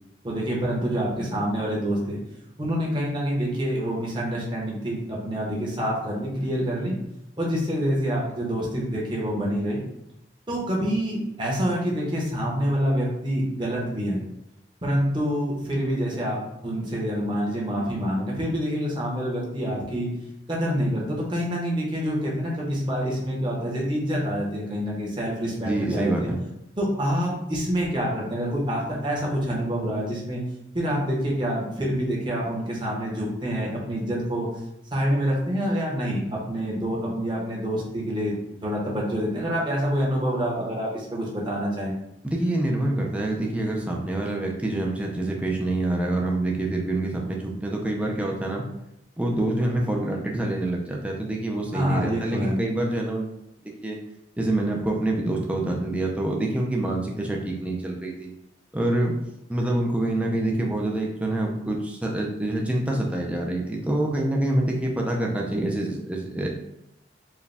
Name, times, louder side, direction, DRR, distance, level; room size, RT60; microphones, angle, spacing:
voice 1, 0.2-2.2 2.6-6.9 7.4-9.8 10.5-14.2 14.8-20.1 20.5-26.3 26.8-30.4 30.7-34.5 34.9-41.9 51.7-52.6, equal, 25° right, -4 dB, 1.0 m, -27 dB
voice 2, 25.6-26.4 42.2-48.7 49.2-53.3 53.8-54.0 54.4-58.3 58.7-59.1 59.5-66.5, right 1 dB, 5° right, -1 dB, 0.5 m, -26 dB
4.7 x 2.3 x 3.3 m, 0.85 s
head